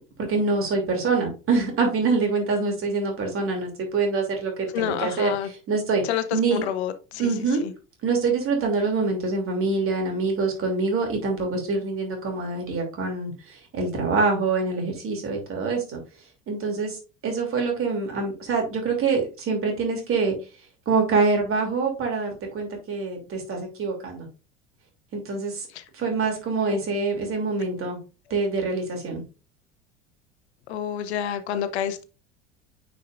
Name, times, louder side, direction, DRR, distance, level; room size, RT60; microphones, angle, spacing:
voice 1, 0.2-5.3 5.7-6.0 6.3-6.6 7.2-7.6 8.0-16.0 16.5-17.0 17.2-20.3 20.9-24.3 25.1-25.7 25.9-28.0 28.3-29.2, right 4 dB, 40° right, 2.9 m, -25 dB
voice 2, 4.7-5.5 6.0-7.3 7.6-7.7 25.7-25.8 26.7-26.8 30.7-32.0, left 10 dB, 65° left, 0.9 m, -28 dB
9.3 x 4.8 x 2.5 m
figure-of-eight pair, 70°, 35 cm